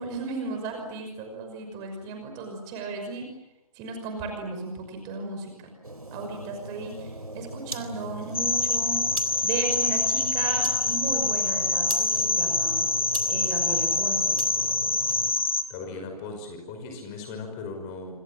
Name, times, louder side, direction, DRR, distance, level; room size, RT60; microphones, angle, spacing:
voice 1, 0.0-3.3 3.8-5.5 6.1-7.1 7.3-9.0 9.4-12.9 13.3-14.4, right 4 dB, 20° right, 4 dB, 5.8 m, -35 dB
sound 1, 5.8-15.3, right 1 dB, 80° right, 3.7 m, -38 dB
sound 2, 8.3-15.6, left 3 dB, 65° left, 2.8 m, -25 dB
voice 2, 15.7-18.2, left 3 dB, 20° left, 4 dB, 5.6 m, -37 dB
27.5 x 26.0 x 7.6 m, 0.87 s
figure-of-eight pair, 140°, 19 cm